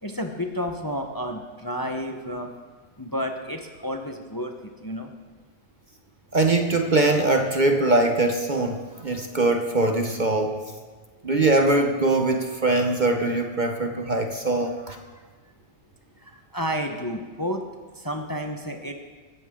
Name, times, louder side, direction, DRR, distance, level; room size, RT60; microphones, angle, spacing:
voice 1, 0.0-2.5 3.0-5.1 16.2-17.6 17.9-18.9, equal, 20° left, 4 dB, 0.9 m, -31 dB
voice 2, 6.3-10.6 11.2-15.0, right 2 dB, 40° right, 5 dB, 1.0 m, -22 dB
19.0 x 14.5 x 3.8 m, 1.4 s
omnidirectional pair, 1.3 m